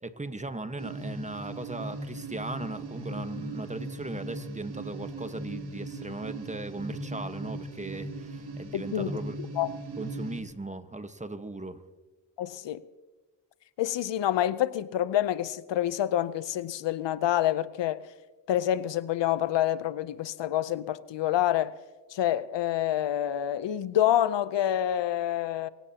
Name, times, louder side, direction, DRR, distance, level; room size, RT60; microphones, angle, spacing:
voice 1, 0.0-9.3 10.0-11.8, right 2 dB, 15° right, 1.3 m, -38 dB
sound 1, 0.8-10.4, right 2 dB, 65° right, 2.4 m, -38 dB
voice 2, 8.7-9.1 9.6-9.7 12.4-12.8 13.8-18.0 18.5-21.8 22.1-25.7, left 12 dB, 85° left, 0.7 m, -27 dB
25.0 x 16.5 x 2.9 m
cardioid pair, 75°, 42 cm